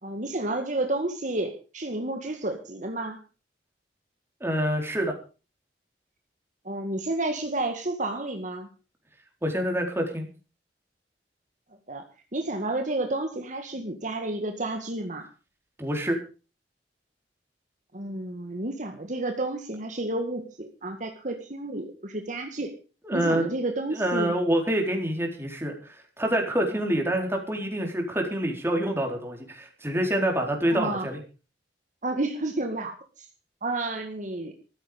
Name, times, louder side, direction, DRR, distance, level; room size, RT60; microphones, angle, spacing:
voice 1, 0.0-3.2 6.7-8.7 11.9-12.0 12.3-15.3 17.9-22.7 23.1-24.3 30.7-31.1 32.0-33.3 33.6-34.5, right 2 dB, 45° right, 4 dB, 1.9 m, -31 dB
voice 2, 4.4-5.2 9.4-10.3 15.8-16.2 23.0-23.4 23.9-25.7 26.2-31.2, right 1 dB, 15° right, 2 dB, 4.2 m, -26 dB
15.0 x 14.0 x 5.2 m, 0.35 s
head